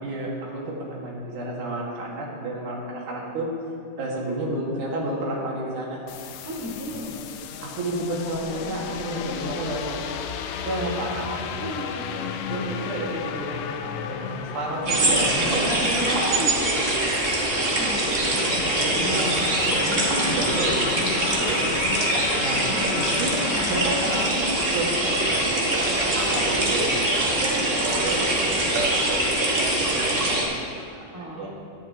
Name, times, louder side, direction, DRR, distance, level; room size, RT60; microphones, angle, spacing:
voice 1, 0.0-3.5 4.0-6.0 7.6-10.1 10.6-11.7 12.5-15.7 17.8-18.0 18.6-19.4 19.7-20.8 21.4-21.7 22.4-23.3 23.7-24.5 24.7-26.9 27.3-30.5 30.8-31.5, right 1 dB, 75° right, -3 dB, 3.3 m, -31 dB
sound 1, 6.1-24.3, left 7 dB, 80° left, 1.6 m, -34 dB
voice 2, 6.4-7.1 8.8-9.3 10.6-11.0 11.5-12.3 14.4-15.0 15.6-16.7 17.2-18.6 21.3-21.5 26.0-26.4 27.2-27.6 31.1-31.5, equal, 15° right, -6 dB, 1.8 m, -35 dB
sound 2, 14.8-30.4, right 1 dB, 55° right, 0.6 m, -23 dB
15.5 x 10.5 x 2.9 m, 2.6 s
omnidirectional pair, 3.7 m